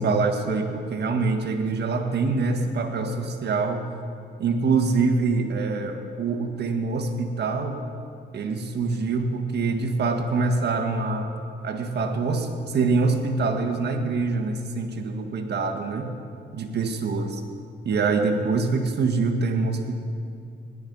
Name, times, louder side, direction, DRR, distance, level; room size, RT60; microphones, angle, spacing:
voice 1, 0.0-3.9 4.4-7.9 8.3-11.3 11.6-16.1 16.5-17.4 17.8-20.0, right 4 dB, 55° right, 5 dB, 1.6 m, -25 dB
17.5 x 11.0 x 5.4 m, 2.4 s
cardioid pair, 90°, 20 cm